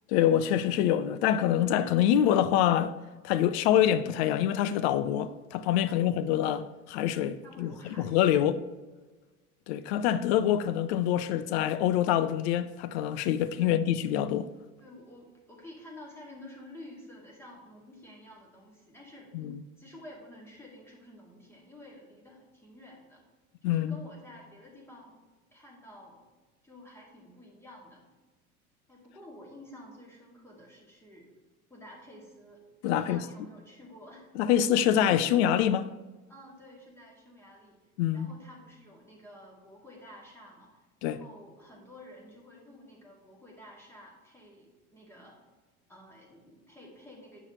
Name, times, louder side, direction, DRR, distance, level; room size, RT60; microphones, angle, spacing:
voice 1, 0.1-2.9 3.2-7.7 8.0-8.6 9.7-14.5 19.3-19.6 23.6-24.0 32.8-33.2 34.4-35.9 38.0-38.3 41.0-41.2, left 10 dB, 50° left, 0.5 m, -25 dB
voice 2, 5.9-6.3 7.4-8.4 13.6-13.9 14.8-19.3 19.8-23.2 23.6-25.2 25.5-26.2 26.6-28.0 28.9-31.3 31.7-32.6 32.9-34.3 36.3-37.8 38.1-45.4 45.9-47.4, left 1 dB, 5° left, 2.1 m, -51 dB
8.2 x 5.5 x 3.0 m
figure-of-eight pair, 75°, 43 cm